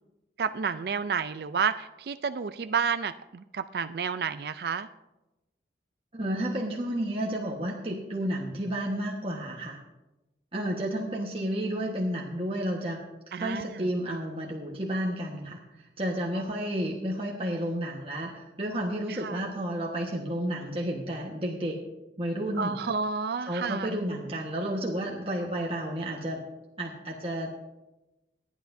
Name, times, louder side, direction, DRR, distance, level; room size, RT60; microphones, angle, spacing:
voice 1, 0.4-4.9 13.3-13.8 19.1-19.4 22.6-24.0, right 6 dB, 60° right, 11 dB, 0.4 m, -30 dB
voice 2, 6.1-9.8 10.5-13.0 13.4-15.6 16.0-21.8 22.2-22.8 23.4-26.4 26.8-27.6, right 1 dB, 30° right, -2 dB, 1.3 m, -31 dB
26.0 x 9.3 x 2.7 m, 1.0 s
head